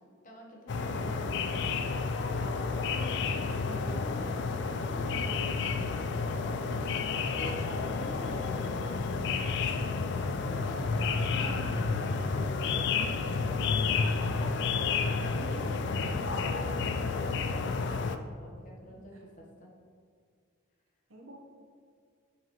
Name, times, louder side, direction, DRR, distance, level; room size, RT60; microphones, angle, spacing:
voice 1, 0.2-1.5 1.8-4.5 4.8-7.1 7.3-15.6 16.0-17.8 18.4-19.7, equal, 40° left, -2 dB, 1.0 m, -46 dB
sound 1, 0.7-18.2, left 4 dB, 55° left, 0.3 m, -31 dB
voice 2, 1.0-1.5 5.6-5.9 10.7-11.4 15.3-15.8 21.1-21.4, right 1 dB, 80° right, 0 dB, 1.1 m, -47 dB
7.0 x 5.9 x 3.0 m, 2.1 s
head